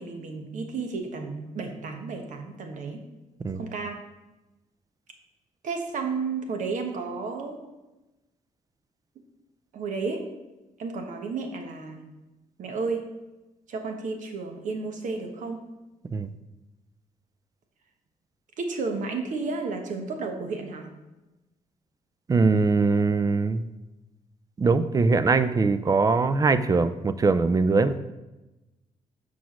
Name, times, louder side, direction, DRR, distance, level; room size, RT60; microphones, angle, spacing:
voice 1, 0.0-3.0 3.5-4.0 5.6-7.6 9.7-10.3 10.8-12.0 12.6-13.0 13.7-15.6 18.6-20.9, right 4 dB, 70° right, 4 dB, 1.2 m, -32 dB
voice 2, 22.3-23.6 24.6-28.0, right 4 dB, 25° right, 12 dB, 0.4 m, -22 dB
6.2 x 4.8 x 5.9 m, 1.0 s
cardioid pair, 110°, 13 cm